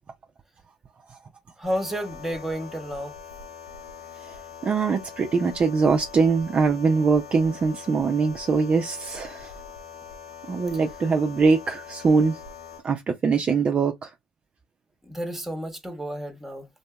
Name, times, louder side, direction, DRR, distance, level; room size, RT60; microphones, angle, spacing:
sound 1, 1.6-12.8, left 6 dB, 90° left, 0.9 m, -43 dB
voice 1, 1.6-3.1 15.1-16.7, equal, 5° right, 0.9 m, -31 dB
voice 2, 4.2-9.5 10.5-12.4 12.8-14.1, right 4 dB, 30° right, 0.4 m, -22 dB
2.7 x 2.6 x 2.2 m
hypercardioid pair, 65°, 4 cm